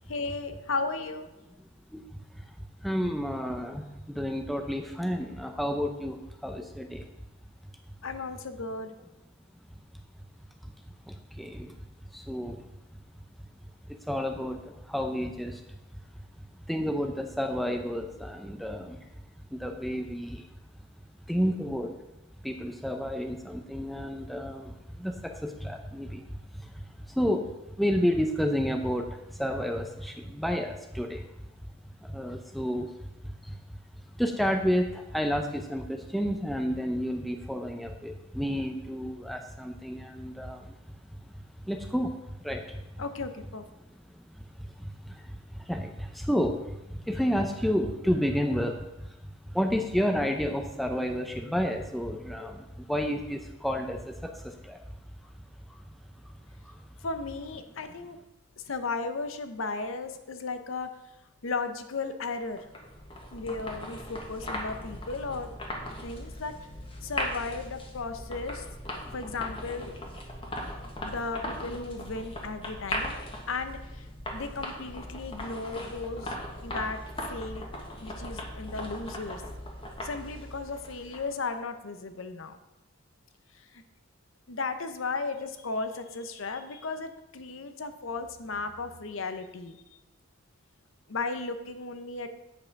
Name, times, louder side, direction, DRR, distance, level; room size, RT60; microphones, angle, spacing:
voice 1, 0.1-1.3 8.0-8.9 43.0-43.6 57.0-58.2 58.7-60.9 61.4-62.7 63.3-65.5 66.0-66.5 67.0-68.7 69.1-69.9 70.7-73.2 73.5-76.4 76.6-77.0 77.3-77.6 78.0-79.4 80.0-82.6 83.5-83.8 84.5-89.8 91.1-92.3, left 3 dB, 70° left, 9 dB, 0.7 m, -35 dB
voice 2, 2.8-7.0 11.1-11.7 12.1-12.6 14.1-15.6 16.7-19.0 19.5-20.4 21.3-21.9 22.4-26.2 26.6-26.7 27.1-27.5 27.8-31.3 32.0-32.9 33.4-33.6 34.2-40.7 41.7-42.1 42.4-42.8 44.8-45.2 45.5-48.9 49.5-54.8 56.7-56.8, equal, ahead, 4 dB, 0.6 m, -30 dB
sound 1, 62.4-81.4, left 1 dB, 25° left, 1.3 m, -38 dB
8.8 x 5.5 x 5.8 m, 0.94 s
head